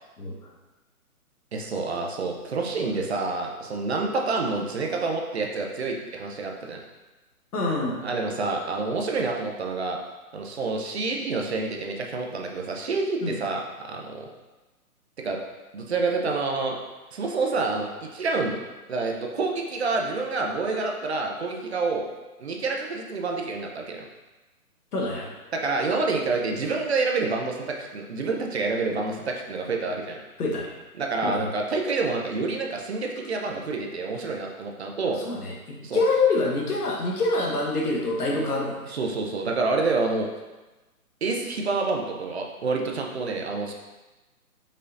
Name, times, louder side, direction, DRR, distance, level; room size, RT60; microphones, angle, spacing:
voice 1, 1.5-6.8 8.0-10.0 10.3-14.3 15.2-15.4 15.7-16.8 17.1-18.6 18.9-22.1 22.4-24.0 25.5-30.2 31.0-35.2 35.8-36.0 38.9-40.3 41.2-43.7, right 3 dB, 45° right, 1 dB, 0.6 m, -28 dB
voice 2, 7.5-8.0 13.2-13.4 24.9-25.3 30.4-30.7 31.2-31.4 35.2-38.8, left 3 dB, 85° left, -1 dB, 1.4 m, -25 dB
5.5 x 3.9 x 2.5 m, 1.1 s
hypercardioid pair, 160°, 44 cm